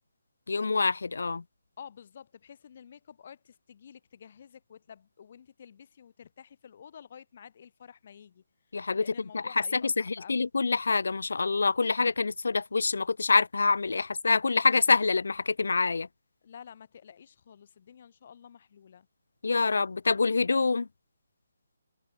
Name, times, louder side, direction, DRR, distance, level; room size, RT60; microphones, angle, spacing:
voice 1, 0.5-1.4 8.7-9.1 9.3-16.1 19.4-20.9, left 4 dB, 65° left, 0.4 m, -26 dB
voice 2, 1.8-8.4 8.9-10.5 16.4-19.1, left 8 dB, 45° left, 6.6 m, -50 dB
figure-of-eight pair, 145°, 0 cm